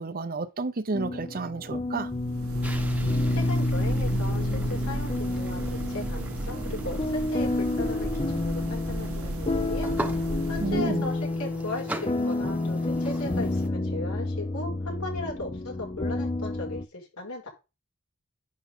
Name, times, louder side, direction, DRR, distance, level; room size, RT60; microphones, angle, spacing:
voice 1, 0.0-2.1 10.6-11.0, right 3 dB, 40° right, 0.7 m, -31 dB
sound 1, 0.9-16.8, left 2 dB, 25° left, 0.6 m, -29 dB
sound 2, 2.0-11.2, right 1 dB, 70° right, 1.2 m, -35 dB
sound 3, 2.6-13.7, right 1 dB, 5° right, 1.1 m, -41 dB
voice 2, 3.3-17.5, left 2 dB, 85° left, 5.9 m, -37 dB
10.5 x 6.8 x 3.7 m
head